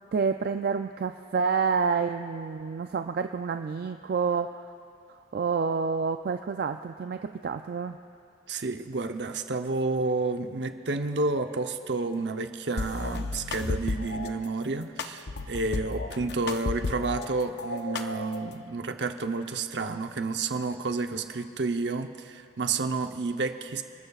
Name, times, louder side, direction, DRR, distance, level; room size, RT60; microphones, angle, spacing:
voice 1, 0.1-4.6 5.1-8.0, right 5 dB, 60° right, 7 dB, 0.3 m, -28 dB
voice 2, 8.5-23.8, right 3 dB, 75° right, 7 dB, 0.8 m, -30 dB
sound 1, 12.8-14.3 15.0-17.3 17.6-18.6, left 3 dB, 65° left, 0.6 m, -33 dB
29.5 x 13.5 x 2.4 m, 2.4 s
head